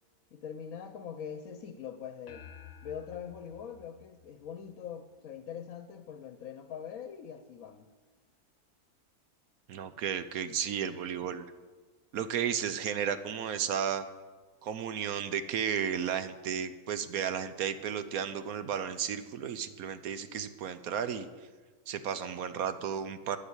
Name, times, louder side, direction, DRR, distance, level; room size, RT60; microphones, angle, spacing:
voice 1, 0.3-2.5 2.8-7.9, left 8 dB, 70° left, 9 dB, 1.1 m, -43 dB
sound 1, 2.3-4.9, left 8 dB, 45° left, 1.1 m, -52 dB
voice 2, 9.7-11.5 12.1-14.0 14.6-21.3 21.9-23.4, right 8 dB, 75° right, 11 dB, 1.2 m, -33 dB
11.5 x 7.3 x 9.7 m, 1.4 s
omnidirectional pair, 1.6 m